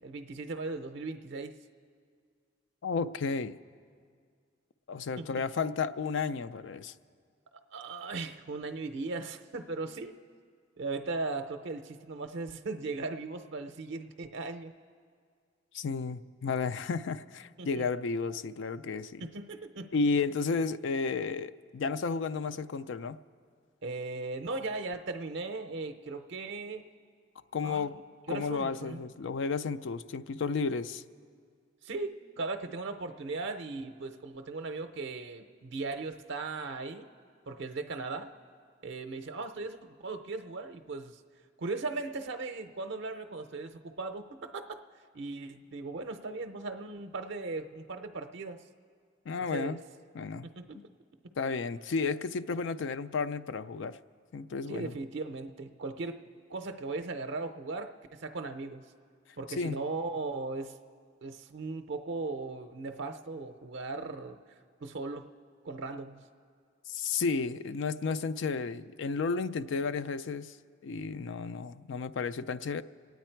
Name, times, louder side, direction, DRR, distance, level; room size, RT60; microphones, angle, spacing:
voice 1, 0.0-1.5 5.2-5.5 7.7-10.1 10.8-14.7 17.6-17.8 19.2-19.9 23.8-26.9 27.6-28.0 28.3-29.0 31.8-37.1 37.5-38.3 38.8-41.2 41.6-44.8 45.1-48.6 49.4-49.8 50.4-50.8 54.7-56.2 56.5-58.8 59.4-60.8 61.2-64.4 64.8-65.3 65.6-66.2, right 3 dB, 65° right, 6 dB, 0.6 m, -38 dB
voice 2, 2.8-3.6 4.9-6.9 15.7-19.3 19.9-23.2 27.5-27.9 28.3-31.0 49.3-49.8 50.1-50.5 50.7-50.8 51.4-54.0 54.3-54.9 59.6-59.8 66.9-70.6 70.8-72.8, left 4 dB, 70° left, 13 dB, 0.4 m, -32 dB
27.0 x 9.3 x 4.5 m, 2.1 s
head